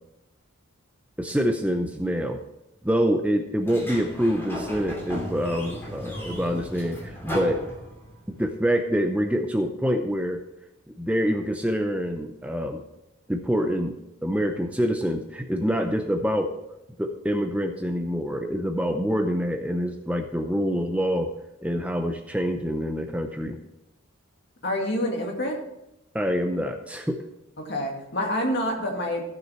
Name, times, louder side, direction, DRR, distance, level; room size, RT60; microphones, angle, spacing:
voice 1, 1.2-2.4 2.8-7.6 8.4-10.4 11.0-12.8 13.3-13.9 14.2-16.5 17.0-21.3 21.6-23.6 26.1-27.2, equal, 5° right, 5 dB, 0.6 m, -26 dB
Sliding door, 3.6-8.3, equal, 10° left, 2.8 m, -35 dB
voice 2, 24.6-25.6 27.6-29.2, left 1 dB, 50° left, 1 dB, 2.2 m, -27 dB
15.0 x 6.3 x 4.4 m, 0.90 s
head